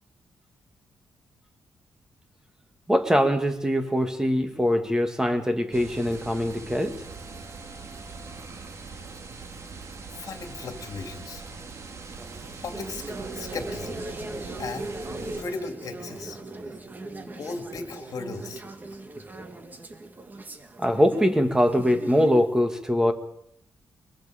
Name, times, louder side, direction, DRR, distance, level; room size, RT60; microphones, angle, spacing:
voice 1, 2.9-7.0 20.8-23.1, equal, 10° right, 7 dB, 1.9 m, -22 dB
sound 1, 5.7-15.4, right 4 dB, 45° right, 2.3 m, -41 dB
voice 2, 10.2-11.4 12.6-14.0 14.6-14.9 15.2-16.4 17.4-18.6, left 4 dB, 55° left, 6 dB, 2.7 m, -36 dB
sound 2, 12.0-22.5, right 2 dB, 25° right, 1.7 m, -39 dB
22.5 x 22.5 x 5.1 m, 0.75 s
wide cardioid pair, 135°, 7 cm